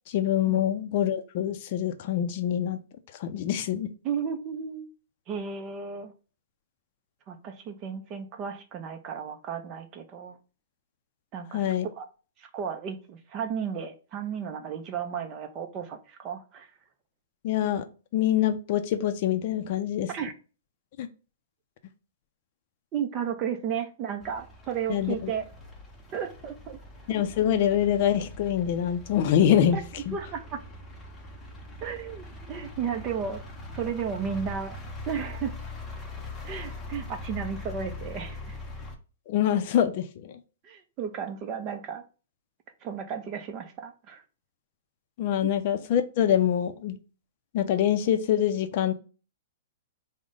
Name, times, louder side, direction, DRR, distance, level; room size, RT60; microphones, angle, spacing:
voice 1, 0.1-2.8 3.2-3.9 11.5-11.9 17.4-17.8 18.1-20.1 21.0-21.1 24.9-25.3 27.1-29.8 30.1-30.2 39.3-40.3 45.2-47.0 47.5-48.9, left 10 dB, 45° left, 0.5 m, -25 dB
voice 2, 4.0-4.9 5.3-6.1 7.3-10.4 11.3-11.6 12.0-12.1 12.4-16.7 20.1-20.3 22.9-25.5 26.1-26.8 29.7-29.8 30.1-30.6 31.8-33.4 33.7-35.5 36.4-38.6 40.6-42.0 42.8-44.2, right 7 dB, 30° right, 0.6 m, -34 dB
sound 1, 24.2-39.0, left 2 dB, 10° left, 0.7 m, -42 dB
4.8 x 2.1 x 3.8 m
hypercardioid pair, 150°, 0 cm